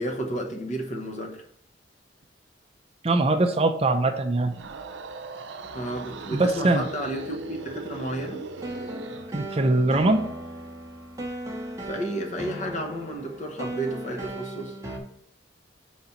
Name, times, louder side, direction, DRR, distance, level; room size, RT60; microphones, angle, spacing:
voice 1, 0.0-1.4 5.7-8.5 11.8-14.8, right 1 dB, 40° left, 1.0 m, -32 dB
voice 2, 3.0-4.5 6.3-6.9 9.3-10.3, right 2 dB, 30° right, 0.5 m, -22 dB
sound 1, 4.4-9.3, right 3 dB, 80° right, 0.6 m, -39 dB
sound 2, 5.6-15.0, right 1 dB, 15° right, 0.9 m, -38 dB
5.0 x 4.1 x 5.8 m
head